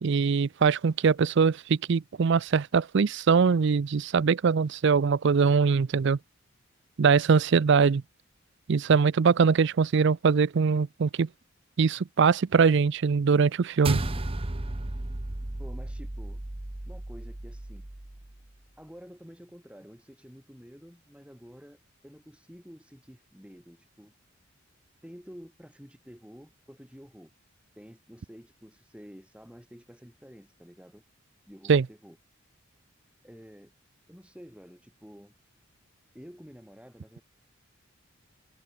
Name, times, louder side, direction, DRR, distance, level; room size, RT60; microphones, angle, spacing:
voice 1, 0.0-6.2 7.0-8.0 8.7-11.3 11.8-14.0 31.7-31.9, right 5 dB, 60° right, 0.4 m, -22 dB
sound 1, 13.8-18.4, right 2 dB, 25° right, 1.0 m, -34 dB
voice 2, 15.6-16.4 16.8-17.9 18.8-24.1 25.0-27.3 27.8-31.0 31.5-32.2 33.2-33.7 34.1-35.3 36.1-37.2, equal, 5° right, 5.3 m, -50 dB
head